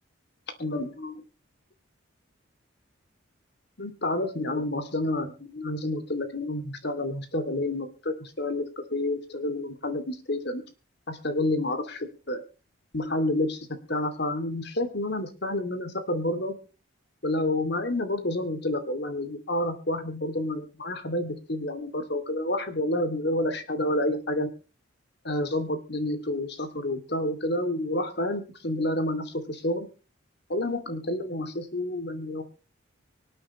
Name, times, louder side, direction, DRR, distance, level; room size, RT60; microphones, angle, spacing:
voice 1, 0.6-1.2 3.8-8.6 8.9-10.6 11.1-12.4 12.9-16.5 17.2-24.5 25.2-29.9 30.5-32.4, left 1 dB, 55° left, 10 dB, 2.6 m, -29 dB
25.0 x 8.7 x 3.1 m, 0.34 s
head